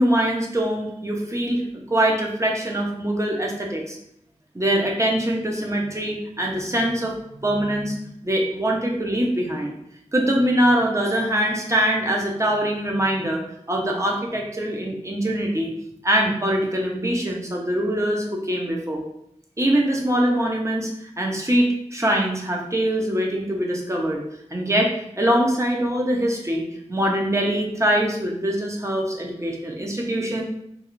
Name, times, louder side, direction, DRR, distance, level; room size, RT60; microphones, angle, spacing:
voice 1, 0.0-1.6 1.9-4.0 4.5-7.1 7.4-7.9 8.2-9.7 10.1-15.7 16.0-19.0 19.6-20.9 21.2-24.2 24.5-26.6 26.9-30.4, right 1 dB, 25° right, 0 dB, 0.8 m, -23 dB
3.7 x 2.4 x 3.1 m, 0.76 s
wide cardioid pair, 45°, 12 cm